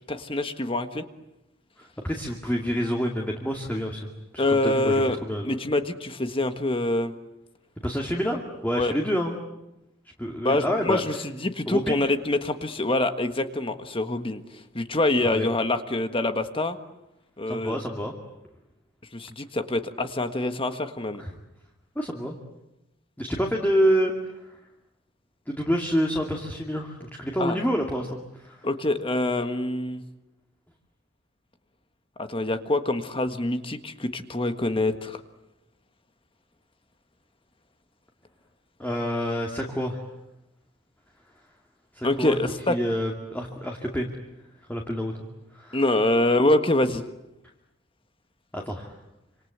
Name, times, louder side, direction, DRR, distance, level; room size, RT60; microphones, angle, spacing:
voice 1, 0.1-1.0 4.4-5.2 5.4-7.1 8.7-8.9 10.4-14.4 14.8-16.8 17.4-17.8 19.1-21.2 27.4-27.6 28.6-30.0 32.2-35.2 42.0-42.8 45.7-47.0, left 2 dB, 25° left, 8 dB, 1.6 m, -25 dB
voice 2, 1.8-5.5 7.8-9.3 10.2-11.0 11.7-12.1 15.2-15.5 17.5-18.1 21.2-21.3 22.0-22.4 23.2-24.1 25.5-28.6 38.8-40.0 41.9-42.4 42.7-44.1 44.7-45.1 45.5-45.8 48.5-48.9, equal, 10° left, 0 dB, 2.4 m, -27 dB
27.0 x 26.5 x 8.2 m, 0.91 s
head